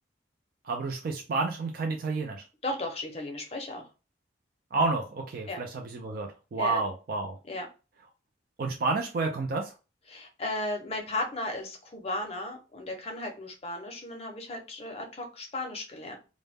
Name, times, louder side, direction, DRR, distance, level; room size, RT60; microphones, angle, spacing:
voice 1, 0.6-2.4 4.7-7.4 8.6-9.7, right 3 dB, 55° right, 2 dB, 0.3 m, -30 dB
voice 2, 2.6-3.9 5.5-5.6 6.6-6.8 7.5-7.7 10.1-16.2, left 2 dB, 35° left, 2 dB, 0.6 m, -35 dB
2.1 x 2.0 x 3.3 m, 0.32 s
head